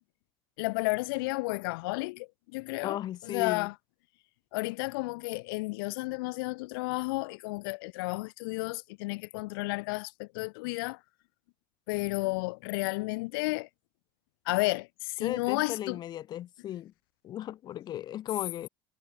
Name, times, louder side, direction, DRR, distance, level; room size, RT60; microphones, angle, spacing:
voice 1, 0.6-3.7 4.5-11.0 11.9-13.7 14.5-16.0, left 25 dB, 80° left, 4.1 m, -32 dB
voice 2, 2.8-3.7 15.2-16.9 17.2-18.7, left 12 dB, 35° left, 4.0 m, -36 dB
cardioid pair, 155°, 12 cm